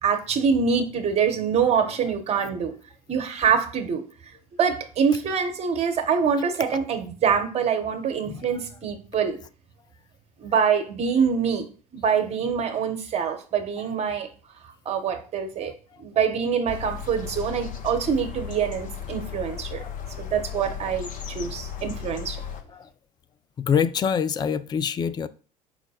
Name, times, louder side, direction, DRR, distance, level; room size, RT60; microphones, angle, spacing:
voice 1, 0.0-2.7 3.1-4.0 4.6-9.4 10.4-11.7 11.9-14.3 14.8-15.7 16.0-19.8 20.2-22.4, right 6 dB, 30° right, 0.9 m, -25 dB
voice 2, 8.3-8.6 13.8-13.9 15.6-15.7 19.7-20.2 20.4-20.6 21.7-21.9 22.4-22.9 23.6-25.3, left 7 dB, 20° left, 0.3 m, -27 dB
sound 1, 16.7-22.6, left 8 dB, 40° left, 0.7 m, -36 dB
4.8 x 2.1 x 4.8 m
figure-of-eight pair, 70°, 20 cm